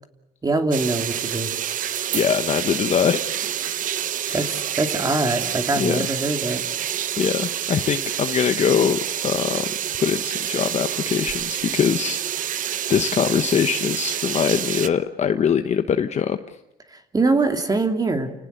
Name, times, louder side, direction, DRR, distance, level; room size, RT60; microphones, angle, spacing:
voice 1, 0.4-1.5 4.3-6.6 16.9-18.3, right 3 dB, 20° right, 6 dB, 2.8 m, -23 dB
sound 1, 0.7-14.9, right 10 dB, 50° right, 0.9 m, -28 dB
voice 2, 2.1-3.5 4.2-4.5 5.8-6.1 7.2-9.7 10.0-12.2 12.9-16.4, left 7 dB, 40° left, 8 dB, 1.1 m, -22 dB
30.0 x 18.5 x 8.2 m, 0.91 s
cardioid pair, 110°, 17 cm